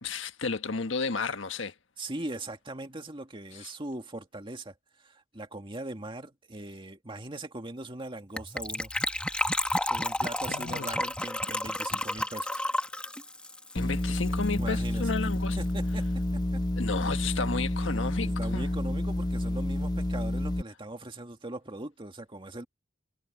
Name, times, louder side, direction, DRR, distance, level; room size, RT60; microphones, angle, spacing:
voice 1, 0.0-1.7 3.6-3.7 10.5-10.9 13.7-15.6 16.8-18.7, left 4 dB, 85° left, 1.4 m, -32 dB
voice 2, 2.0-8.9 9.9-12.6 14.5-16.1 16.3-16.6 18.2-22.7, right 2 dB, 25° right, 2.1 m, -40 dB
Gurgling / Trickle dribble / Fill (with liquid), 8.4-14.6 14.9-15.0 15.1-15.3 15.6-15.7, left 1 dB, 5° left, 1.7 m, -31 dB
sound 1, 13.8-20.6, left 1 dB, 20° left, 0.7 m, -29 dB
head